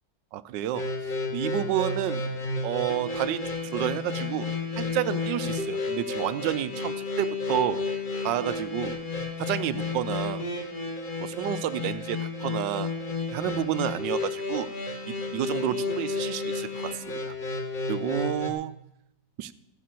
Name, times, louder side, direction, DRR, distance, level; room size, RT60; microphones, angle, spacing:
voice 1, 0.3-2.2 2.6-4.5 4.8-7.8 8.2-9.0 9.4-10.4 11.2-12.9 13.3-14.7 15.1-17.3 17.9-18.7 19.4-19.5, right 12 dB, 85° right, 15 dB, 1.3 m, -30 dB
sound 1, 0.7-18.5, left 3 dB, 30° left, 1.1 m, -32 dB
14.5 x 6.8 x 7.5 m, 0.84 s
omnidirectional pair, 1.9 m